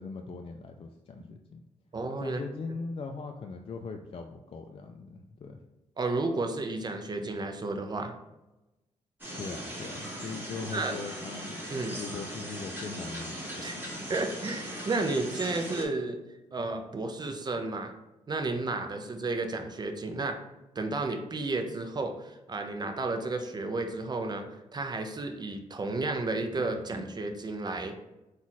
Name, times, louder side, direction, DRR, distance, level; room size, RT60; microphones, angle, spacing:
voice 1, 0.0-1.6 2.2-5.6 9.4-11.6 12.0-14.1, left 4 dB, 40° left, 4 dB, 0.4 m, -40 dB
voice 2, 1.9-2.4 6.0-8.1 10.7-10.9 11.7-12.0 13.6-13.8 14.1-16.2 16.5-17.9 18.3-20.4 20.8-24.4 24.7-27.9, right 3 dB, 30° right, 5 dB, 0.6 m, -32 dB
sound 1, 9.2-15.9, equal, 15° right, 1.5 m, -39 dB
4.0 x 2.4 x 4.0 m, 0.98 s
cardioid pair, 70°, 14 cm